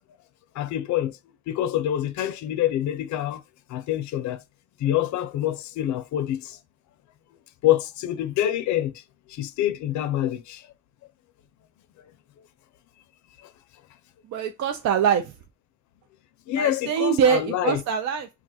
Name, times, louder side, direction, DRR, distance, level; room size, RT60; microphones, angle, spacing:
voice 1, 0.6-1.2 1.5-3.4 3.7-4.4 4.8-6.6 7.6-8.9 9.3-10.6 16.5-17.8, left 12 dB, 70° left, 0.5 m, -26 dB
voice 2, 14.3-15.4 16.6-18.3, right 7 dB, 65° right, 0.5 m, -23 dB
2.4 x 2.3 x 4.0 m
cardioid pair, 90°, 30 cm